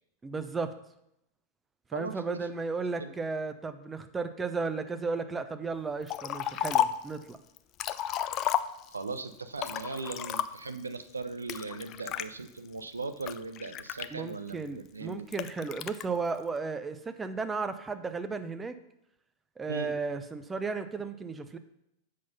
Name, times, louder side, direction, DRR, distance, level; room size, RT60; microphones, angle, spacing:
voice 1, 0.2-0.7 1.9-7.4 14.1-18.8 19.6-21.6, right 4 dB, 15° right, 9 dB, 0.7 m, -34 dB
voice 2, 1.9-2.5 3.0-3.1 8.9-15.3 19.7-19.9, right 3 dB, 75° right, 10 dB, 0.6 m, -39 dB
Liquid, 6.1-7.1 7.6-9.1 9.6-10.8 11.5-12.3 12.9-14.5 15.3-16.0, left 11 dB, 35° left, 0.4 m, -32 dB
7.6 x 6.0 x 5.5 m, 0.80 s
figure-of-eight pair, 90°, 0 cm